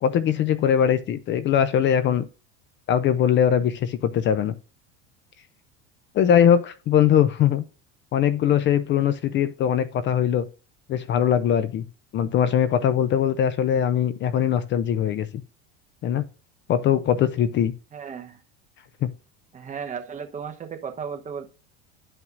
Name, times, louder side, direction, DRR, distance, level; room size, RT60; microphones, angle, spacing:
voice 1, 0.0-2.2 2.9-4.5 6.1-7.6 8.1-10.5 10.9-11.9 12.1-15.3 16.0-16.3 16.7-17.7 19.0-19.1, left 9 dB, 35° left, 0.5 m, -21 dB
voice 2, 17.9-18.4 19.5-21.5, right 6 dB, 25° right, 1.0 m, -35 dB
10.5 x 5.6 x 2.5 m
supercardioid pair, 115°, 31 cm